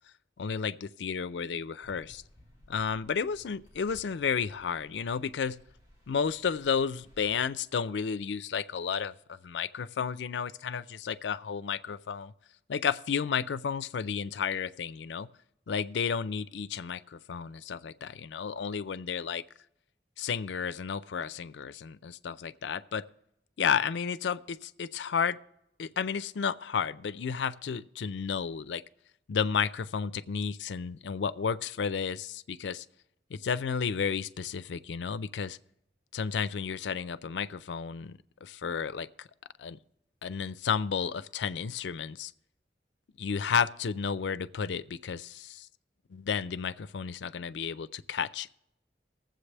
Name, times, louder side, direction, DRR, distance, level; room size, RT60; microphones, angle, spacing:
voice 1, 0.4-2.2 2.7-5.6 6.1-12.3 12.7-15.3 15.7-19.4 20.2-23.0 23.6-25.4 25.8-28.8 29.3-32.9 33.3-35.6 36.1-39.3 39.6-39.8 40.2-42.3 43.2-45.7 46.1-48.5, left 6 dB, 90° left, 15 dB, 0.4 m, -32 dB
sound 1, 1.8-7.4, left 1 dB, 30° right, 1.9 m, -58 dB
20.0 x 7.7 x 3.3 m, 0.79 s
head